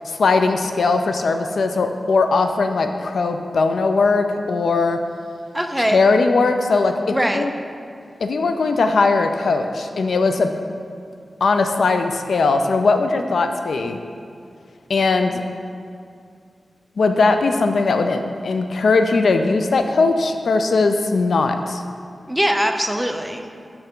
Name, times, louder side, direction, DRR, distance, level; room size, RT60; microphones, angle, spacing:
voice 1, 0.1-5.0 5.9-7.5 8.2-10.5 11.4-14.0 14.9-15.4 17.0-21.8, left 3 dB, 90° left, 6 dB, 0.4 m, -19 dB
voice 2, 5.5-6.0 7.1-7.4 13.2-13.3 22.3-23.5, equal, 10° right, 4 dB, 0.5 m, -22 dB
6.4 x 5.7 x 3.7 m, 2.3 s
wide cardioid pair, 70°, 0 cm